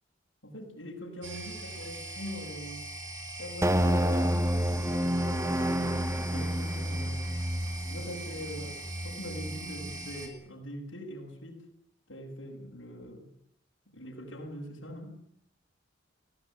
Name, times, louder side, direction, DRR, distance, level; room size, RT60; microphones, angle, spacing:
voice 1, 0.4-2.9 3.4-7.3 7.9-11.7 12.1-13.3 13.9-15.1, equal, 90° left, -2 dB, 7.4 m, -43 dB
sound 1, 1.2-10.3, right 2 dB, 80° right, 6.9 m, -41 dB
sound 2, 3.6-10.1, equal, 15° right, 1.2 m, -30 dB
25.0 x 18.5 x 9.2 m, 0.67 s
head